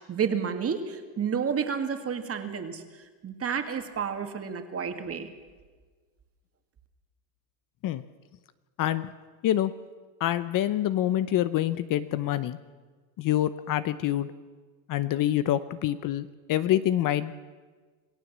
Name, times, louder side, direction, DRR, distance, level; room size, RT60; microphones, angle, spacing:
voice 1, 0.1-2.8 3.2-5.3, right 7 dB, 30° right, 7 dB, 2.3 m, -30 dB
voice 2, 8.8-9.1 9.4-9.7 10.2-12.6 13.2-14.3 14.9-17.3, left 12 dB, 40° left, 14 dB, 0.8 m, -26 dB
27.5 x 17.0 x 7.4 m, 1.4 s
supercardioid pair, 130°, 49 cm